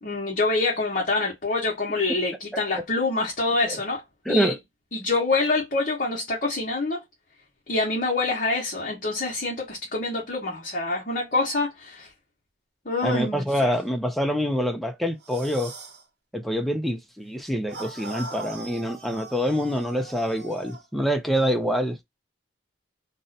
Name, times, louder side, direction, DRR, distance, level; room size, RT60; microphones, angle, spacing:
voice 1, 0.0-4.0 4.3-4.5 4.9-7.0 7.7-12.1 12.8-13.7, left 3 dB, 45° left, 0.9 m, -26 dB
voice 2, 4.3-4.6 13.0-15.7 16.3-22.0, equal, ahead, 0.4 m, -26 dB
sound 1, 15.2-16.0 17.7-20.8, right 3 dB, 55° right, 0.8 m, -41 dB
2.6 x 2.1 x 3.9 m
head